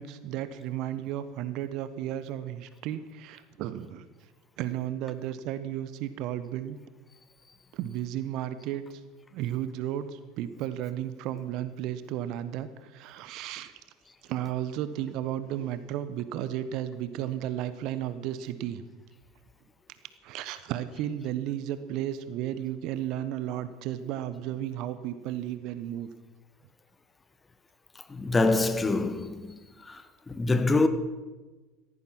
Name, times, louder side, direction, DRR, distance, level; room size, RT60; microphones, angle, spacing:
voice 1, 0.0-4.0 4.6-6.8 7.7-8.8 9.3-13.7 14.3-18.8 20.2-26.1, right 11 dB, 55° right, 1.1 m, -33 dB
voice 2, 28.1-29.5 29.9-30.0 30.3-30.9, left 2 dB, 20° left, 1.5 m, -25 dB
16.5 x 13.5 x 6.1 m
figure-of-eight pair, 75°, 0 cm